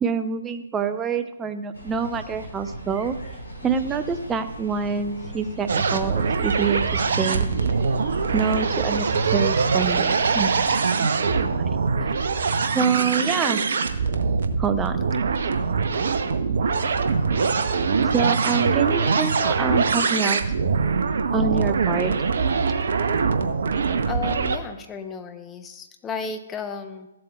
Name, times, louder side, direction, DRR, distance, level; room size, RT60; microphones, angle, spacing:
voice 1, 0.0-3.2 3.6-6.8 7.2-7.5 8.3-10.5 10.9-11.1 11.4-11.5 12.7-13.6 14.6-15.0 18.0-20.4 21.3-22.1 23.9-24.0, right 6 dB, 15° right, 9 dB, 0.5 m, -26 dB
sound 1, 1.7-10.8, equal, 75° left, 3.2 m, -37 dB
sound 2, 5.7-24.6, right 5 dB, 60° right, 0.8 m, -23 dB
voice 2, 24.1-27.1, left 5 dB, 15° left, 7 dB, 0.7 m, -33 dB
14.0 x 7.6 x 2.3 m, 1.0 s
figure-of-eight pair, 130°, 0 cm